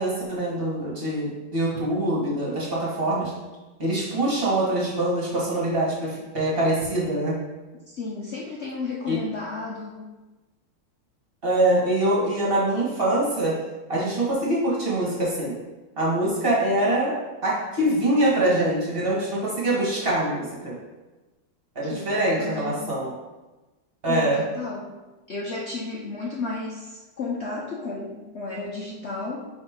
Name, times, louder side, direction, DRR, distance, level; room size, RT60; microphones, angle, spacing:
voice 1, 0.0-3.3 3.8-7.4 9.1-9.2 11.4-13.5 13.9-15.5 16.0-17.1 17.4-20.7 21.8-23.1 24.0-24.4, right 1 dB, 25° right, -5 dB, 1.9 m, -24 dB
voice 2, 7.9-10.1 21.9-22.8 24.1-24.9 25.3-29.5, left 3 dB, 80° left, -4 dB, 0.6 m, -33 dB
9.7 x 3.6 x 3.8 m, 1.1 s
omnidirectional pair, 2.3 m